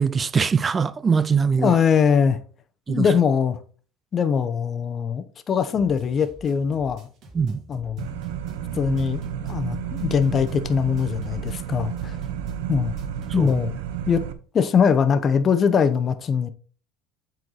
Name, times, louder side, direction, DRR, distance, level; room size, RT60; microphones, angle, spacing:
voice 1, 0.0-1.8 2.9-3.1 7.3-7.6 13.4-13.5, right 5 dB, 25° right, 0.4 m, -22 dB
voice 2, 1.6-2.4 2.9-3.6 4.1-7.1 7.7-8.1 8.7-9.2 9.5-12.2 12.7-12.9 13.3-13.7 14.1-14.2 14.5-16.5, left 6 dB, 30° left, 0.9 m, -21 dB
sound 1, 5.7-13.7, right 1 dB, 45° right, 2.4 m, -47 dB
sound 2, 8.0-14.3, right 9 dB, 90° right, 0.9 m, -31 dB
7.8 x 4.5 x 4.0 m
supercardioid pair, 125°, 0 cm